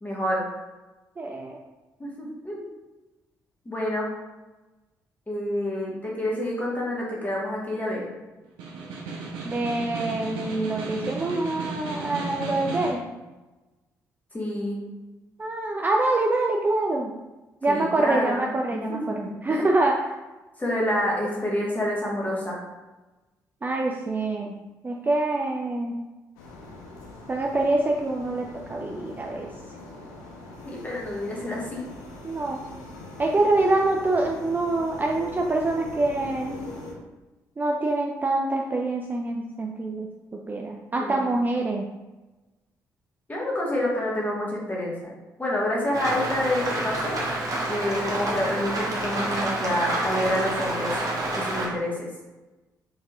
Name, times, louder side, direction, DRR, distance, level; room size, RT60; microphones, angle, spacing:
voice 1, 0.0-0.4 2.0-2.7 3.6-4.1 5.3-8.0 14.3-14.8 17.7-19.6 20.6-22.6 30.6-31.8 40.9-41.3 43.3-45.1 45.4-47.2 47.7-51.0 51.3-52.1, left 1 dB, 15° left, -4 dB, 1.3 m, -28 dB
voice 2, 1.2-1.6 9.4-13.0 15.4-17.1 17.6-20.2 23.6-24.5 24.8-26.0 27.3-29.5 32.2-32.6 33.2-36.6 37.6-40.1 40.5-41.8, right 2 dB, 20° right, 0 dB, 0.3 m, -25 dB
Snare drum, 8.4-13.1, right 3 dB, 65° right, 0.6 m, -34 dB
sound 1, 26.4-36.9, left 2 dB, 70° left, 0.6 m, -42 dB
Rain, 45.9-51.7, right 1 dB, 40° right, 0.9 m, -28 dB
4.0 x 3.4 x 2.4 m, 1.1 s
figure-of-eight pair, 40°, 9 cm